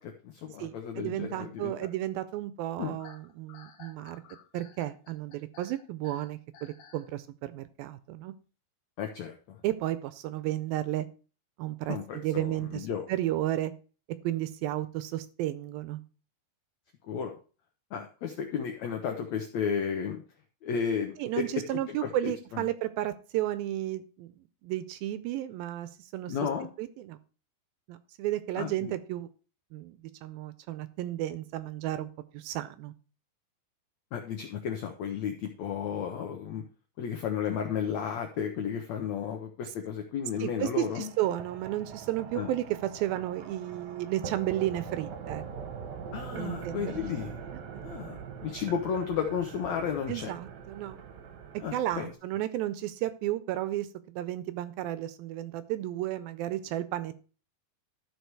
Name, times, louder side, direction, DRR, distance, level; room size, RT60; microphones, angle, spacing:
voice 1, 0.0-1.7 2.8-3.0 9.0-9.6 11.9-13.0 17.1-17.3 17.9-20.2 20.6-21.4 21.7-22.6 26.3-26.7 28.5-28.9 34.1-36.6 37.0-41.1 42.3-42.5 46.1-47.4 47.8-50.3 51.6-52.1, left 7 dB, 80° left, 4 dB, 1.6 m, -33 dB
voice 2, 0.6-4.2 4.5-8.3 9.6-11.1 11.6-13.7 14.2-16.0 21.2-26.4 26.8-27.2 27.9-29.3 29.7-32.9 40.4-45.4 46.3-46.9 47.7-47.8 50.1-51.0 51.7-57.1, right 13 dB, 80° right, 13 dB, 2.3 m, -33 dB
sound 1, 3.0-7.1, left 7 dB, 60° left, 2.5 m, -54 dB
sound 2, 40.8-52.1, right 7 dB, 65° right, 2.0 m, -43 dB
12.5 x 4.9 x 4.6 m, 0.37 s
omnidirectional pair, 4.5 m